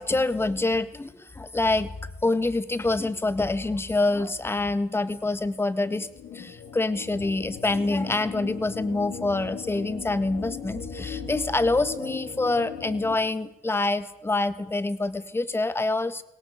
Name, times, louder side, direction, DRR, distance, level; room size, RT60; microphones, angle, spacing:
voice 1, 0.0-1.9 2.2-6.1 6.3-16.2, left 2 dB, 15° left, 13 dB, 1.7 m, -26 dB
sound 1, 5.8-13.1, left 7 dB, 70° left, 5.2 m, -38 dB
23.5 x 18.0 x 8.2 m, 0.84 s
cardioid pair, 110°, 17 cm